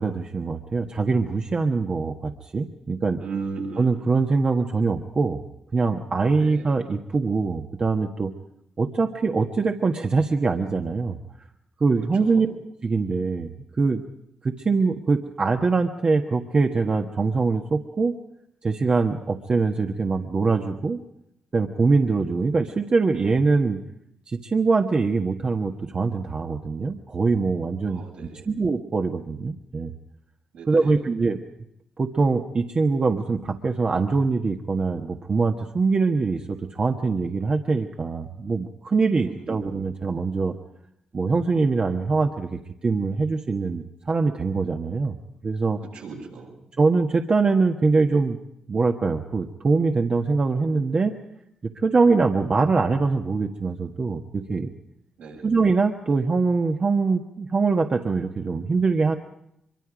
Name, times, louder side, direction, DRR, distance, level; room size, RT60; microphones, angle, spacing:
voice 1, 0.0-3.2 3.8-5.4 5.7-8.3 8.8-11.2 11.8-12.5 12.8-14.0 14.4-18.1 18.6-21.0 21.5-23.8 24.3-28.0 28.5-29.9 30.7-31.4 32.0-40.5 41.1-45.1 45.4-45.8 46.8-48.4 48.7-51.1 51.6-54.7 55.4-59.2, right 4 dB, 45° right, 3 dB, 1.4 m, -23 dB
voice 2, 3.2-4.1 6.4-6.7 12.2-12.4 27.9-28.5 30.5-30.9 39.3-39.5 45.9-46.6 55.2-55.5, right 4 dB, 85° right, -3 dB, 7.3 m, -36 dB
24.0 x 23.5 x 5.1 m, 0.79 s
supercardioid pair, 45°, 2 cm